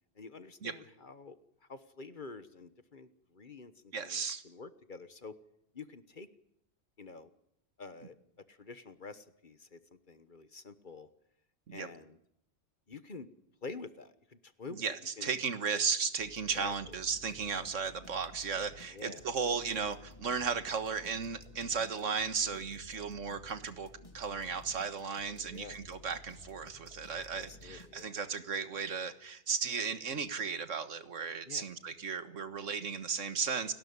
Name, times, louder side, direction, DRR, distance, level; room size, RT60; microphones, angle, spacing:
voice 1, 0.2-1.4 1.7-5.3 5.7-6.3 7.0-7.3 7.8-8.1 8.5-9.8 10.1-11.1 11.7-12.2 12.9-13.3 13.6-14.8 15.2-15.3 16.5-17.0 18.9-19.2 25.5-25.8 27.3-28.1 31.5-31.7, left 4 dB, 40° left, 13 dB, 1.3 m, -48 dB
voice 2, 3.9-4.4 11.7-11.9 14.7-23.9 24.1-33.7, right 5 dB, 80° right, 11 dB, 1.8 m, -35 dB
sound 1, 16.2-28.4, left 2 dB, 25° left, 2.7 m, -55 dB
29.5 x 12.5 x 9.6 m, 0.76 s
omnidirectional pair, 1.3 m